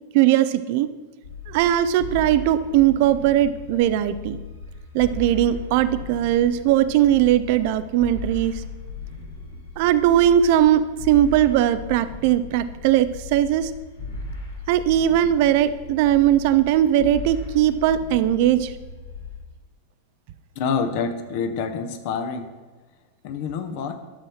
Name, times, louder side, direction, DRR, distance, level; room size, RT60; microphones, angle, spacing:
voice 1, 0.1-0.9 1.5-4.4 4.9-8.6 9.8-13.7 14.7-18.7, right 11 dB, 50° right, 13 dB, 0.5 m, -19 dB
sound 1, 1.2-19.4, left 3 dB, 70° left, 3.3 m, -37 dB
voice 2, 20.5-22.5 23.2-24.0, left 5 dB, 45° left, 7 dB, 1.2 m, -27 dB
11.5 x 7.0 x 6.3 m, 1.2 s
figure-of-eight pair, 90°, 0 cm